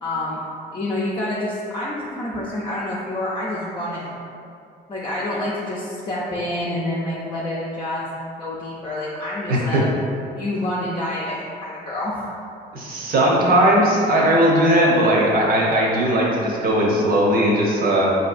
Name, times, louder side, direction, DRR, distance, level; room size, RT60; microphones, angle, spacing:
voice 1, 0.0-0.4 0.7-4.2 4.9-9.9 10.4-12.3, left 1 dB, 30° left, -5 dB, 0.6 m, -27 dB
voice 2, 9.5-9.8 12.7-18.1, right 1 dB, 60° right, -3 dB, 0.9 m, -18 dB
5.2 x 2.7 x 2.5 m, 2.5 s
cardioid pair, 110°, 17 cm